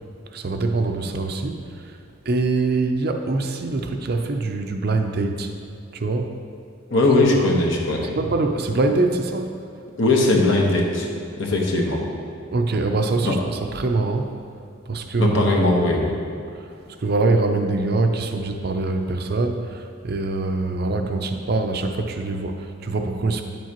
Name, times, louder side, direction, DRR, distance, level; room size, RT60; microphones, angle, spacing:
voice 1, 0.3-1.9 2.3-5.5 5.9-6.3 7.0-7.5 8.0-9.5 12.5-14.3 14.9-15.6 17.0-23.4, right 3 dB, 50° right, 5 dB, 0.5 m, -24 dB
voice 2, 6.9-8.2 10.0-11.1 11.4-12.0 13.2-13.4 15.2-16.1, left 2 dB, 65° left, -1 dB, 1.1 m, -19 dB
9.5 x 7.3 x 2.9 m, 2.5 s
head